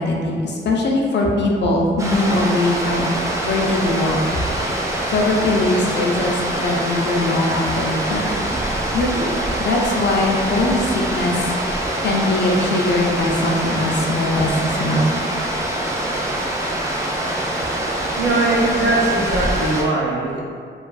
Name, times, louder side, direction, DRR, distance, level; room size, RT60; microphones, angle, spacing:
voice 1, 0.0-3.1 3.4-4.4 5.1-8.4 8.9-11.3 12.0-15.1, left 2 dB, 60° left, -1 dB, 0.5 m, -21 dB
sound 1, 2.0-19.8, right 1 dB, 15° right, 0.3 m, -24 dB
voice 2, 18.2-20.4, right 2 dB, 60° right, -4 dB, 0.6 m, -20 dB
2.5 x 2.3 x 2.3 m, 2.1 s
wide cardioid pair, 105°, 20 cm